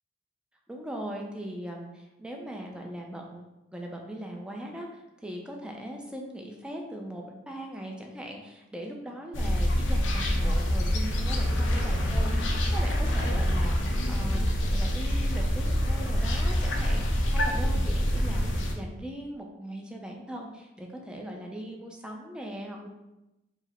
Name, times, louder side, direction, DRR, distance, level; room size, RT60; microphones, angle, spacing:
voice 1, 0.7-3.4 3.7-13.7 14.1-22.9, right 1 dB, 5° right, 0 dB, 0.6 m, -40 dB
sound 1, 9.3-18.7, equal, 75° left, 0.6 m, -26 dB
4.8 x 2.1 x 4.2 m, 0.95 s
head